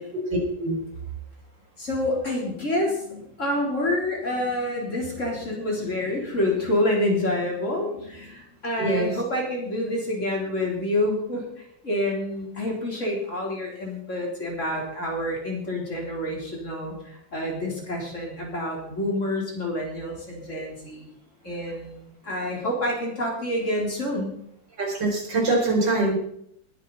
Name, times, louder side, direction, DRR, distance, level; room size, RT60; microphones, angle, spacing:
voice 1, 1.8-21.1 21.4-24.3, left 1 dB, 40° left, -2 dB, 4.2 m, -28 dB
voice 2, 8.8-9.1 24.8-26.1, right 2 dB, 75° right, -1 dB, 5.2 m, -23 dB
20.0 x 10.5 x 4.2 m, 0.72 s
omnidirectional pair, 2.0 m